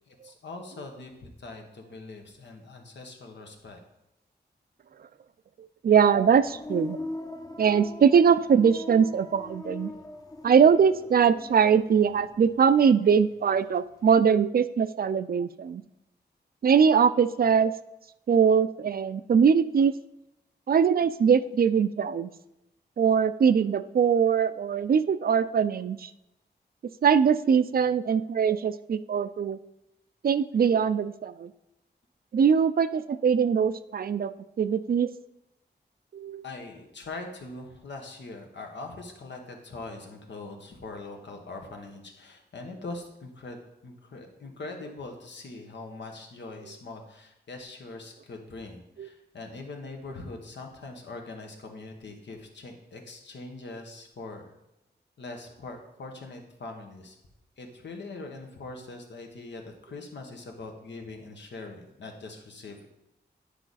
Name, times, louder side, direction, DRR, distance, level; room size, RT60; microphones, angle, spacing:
voice 1, 0.1-3.8 36.4-54.5 55.2-57.2 57.6-62.9, left 3 dB, 85° left, 3 dB, 1.2 m, -42 dB
voice 2, 5.8-7.0 7.6-9.9 10.4-15.8 16.6-17.7 18.3-19.9 20.7-22.3 23.0-26.1 27.0-29.6 30.2-31.5 32.3-35.1 36.1-36.4 49.0-49.1, right 7 dB, 55° right, 14 dB, 0.4 m, -22 dB
sound 1, 6.1-13.0 13.3-14.0, left 2 dB, 20° left, 0.6 m, -41 dB
9.9 x 4.9 x 4.1 m, 0.89 s
wide cardioid pair, 100°, 18 cm